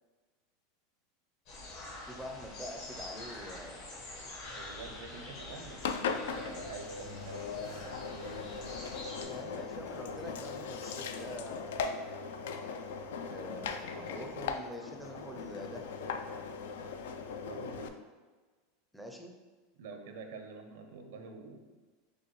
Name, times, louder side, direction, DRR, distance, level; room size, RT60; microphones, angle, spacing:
sound 1, 1.5-9.2, left 2 dB, 55° left, 1.3 m, -46 dB
voice 1, 2.0-3.8 9.3-11.8 13.2-15.9 18.9-19.3, equal, ahead, 2 dB, 0.5 m, -45 dB
voice 2, 4.4-8.5 17.4-17.9 19.8-21.9, right 4 dB, 80° right, 5 dB, 0.6 m, -48 dB
Engine, 5.8-17.9, left 5 dB, 85° left, 0.3 m, -39 dB
6.5 x 2.3 x 3.1 m, 1.4 s
supercardioid pair, 145°, 0 cm